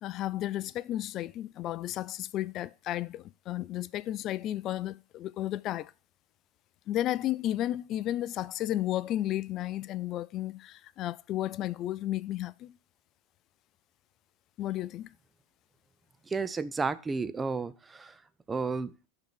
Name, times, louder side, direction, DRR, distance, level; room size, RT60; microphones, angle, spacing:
voice 1, 0.0-5.9 6.9-12.7 14.6-15.1, left 13 dB, 40° left, 0.3 m, -33 dB
voice 2, 16.3-18.2 18.5-18.9, right 4 dB, 15° right, 0.5 m, -32 dB
5.9 x 3.9 x 5.9 m
hypercardioid pair, 115°, 0 cm